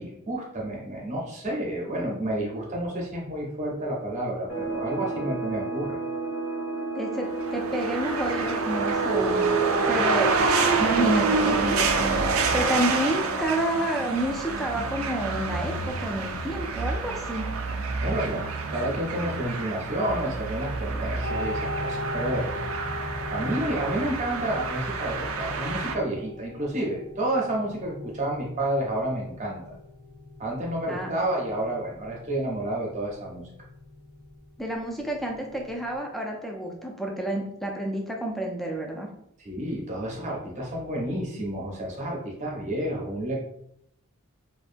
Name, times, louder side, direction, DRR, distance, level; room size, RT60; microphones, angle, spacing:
voice 1, 0.0-6.0 18.0-22.5 23.3-29.8 30.4-33.5 39.4-43.4, right 1 dB, 35° right, -2 dB, 0.7 m, -30 dB
sound 1, 4.5-13.8, right 3 dB, 85° left, 1.1 m, -32 dB
voice 2, 6.9-9.5 9.9-11.8 12.5-17.5 30.9-31.1 34.6-39.1, right 1 dB, ahead, 0 dB, 0.3 m, -29 dB
sound 2, 7.4-25.9, right 4 dB, 75° right, 0.4 m, -28 dB
sound 3, 21.2-36.0, left 1 dB, 50° left, 0.6 m, -39 dB
2.6 x 2.2 x 2.5 m, 0.74 s
head